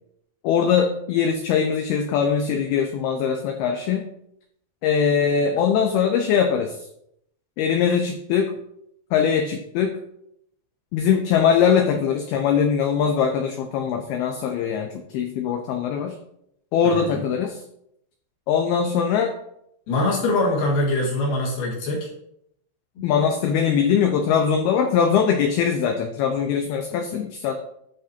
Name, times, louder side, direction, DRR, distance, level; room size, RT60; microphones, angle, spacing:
voice 1, 0.4-4.0 4.8-6.8 7.6-8.5 9.1-10.0 10.9-16.1 16.7-17.6 18.5-19.3 23.0-27.6, left 7 dB, 80° left, 4 dB, 2.2 m, -21 dB
voice 2, 16.8-17.2 19.9-22.1 23.0-23.1, left 2 dB, 55° left, -3 dB, 3.2 m, -23 dB
11.0 x 6.1 x 2.8 m, 0.74 s
omnidirectional pair, 5.2 m